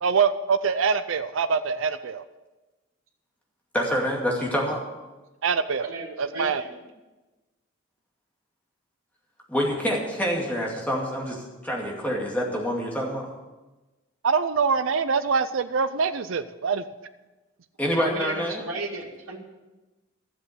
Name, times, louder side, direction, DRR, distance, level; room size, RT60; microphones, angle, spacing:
voice 1, 0.0-2.2 5.4-6.6 14.2-16.8, right 5 dB, 70° right, 11 dB, 0.5 m, -24 dB
voice 2, 3.7-4.8 9.5-13.3 17.8-18.6, equal, 10° left, -2 dB, 2.3 m, -26 dB
voice 3, 5.8-6.7 17.9-19.4, right 2 dB, 85° right, -2 dB, 2.2 m, -35 dB
12.5 x 8.1 x 8.0 m, 1.1 s
head